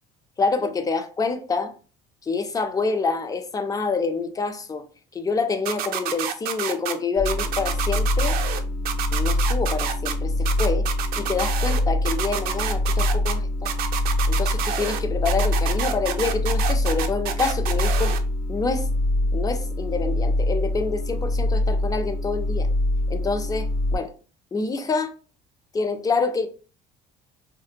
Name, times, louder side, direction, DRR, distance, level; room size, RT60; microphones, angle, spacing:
voice 1, 0.4-1.7 2.2-4.8 5.1-8.4 9.1-10.9 11.2-13.7 14.3-18.1 18.5-18.9 19.3-22.7 23.1-24.1 24.5-25.1 25.7-26.5, left 4 dB, 20° left, 0.4 m, -27 dB
sound 1, 5.7-6.9 7.3-8.6 8.9-10.1 10.5-11.8 12.1-13.3 13.7-15.0 15.3-18.2, right 9 dB, 65° right, 0.4 m, -28 dB
sound 2, 7.2-24.0, left 1 dB, 60° left, 1.1 m, -24 dB
2.7 x 2.1 x 2.5 m
supercardioid pair, 95°, 17 cm